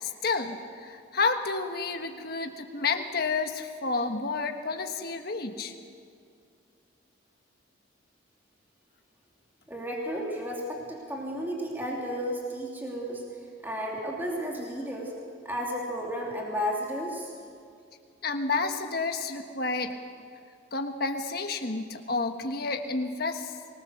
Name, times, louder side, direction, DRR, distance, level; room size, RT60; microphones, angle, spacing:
voice 1, 0.0-5.7 18.2-19.9 20.7-23.5, left 4 dB, 50° left, 5 dB, 1.4 m, -30 dB
voice 2, 9.7-13.2 13.6-15.1 15.4-17.3, equal, 10° right, -2 dB, 2.8 m, -33 dB
25.0 x 19.5 x 6.6 m, 2.3 s
head